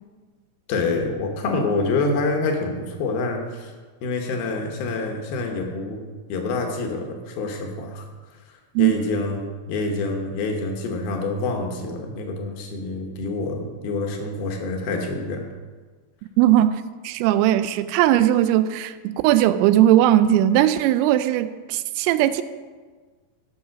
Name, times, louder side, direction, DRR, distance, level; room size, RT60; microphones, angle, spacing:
voice 1, 0.7-3.7 4.0-6.0 6.3-8.1 8.8-15.4, left 3 dB, 65° left, 2 dB, 2.5 m, -26 dB
voice 2, 16.4-22.4, right 12 dB, 85° right, 12 dB, 3.2 m, -18 dB
14.5 x 7.3 x 5.9 m, 1.4 s
omnidirectional pair, 5.8 m